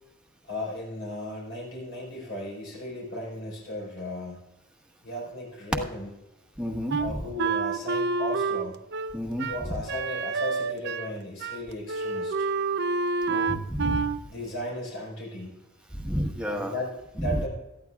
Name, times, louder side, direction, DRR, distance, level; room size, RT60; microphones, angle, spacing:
voice 1, 0.4-4.4 5.0-6.1 7.0-8.8 9.4-12.5 14.3-15.5 16.4-17.5, left 1 dB, 70° left, -4 dB, 4.6 m, -36 dB
voice 2, 6.6-7.0 9.1-9.5 13.3-14.0 16.0-16.7, equal, 5° right, 0 dB, 1.4 m, -30 dB
Wind instrument woodwind instrument, 6.9-11.1 11.4-11.6 11.9-14.2, right 4 dB, 55° right, 0.6 m, -28 dB
18.5 x 13.5 x 2.4 m, 0.96 s
head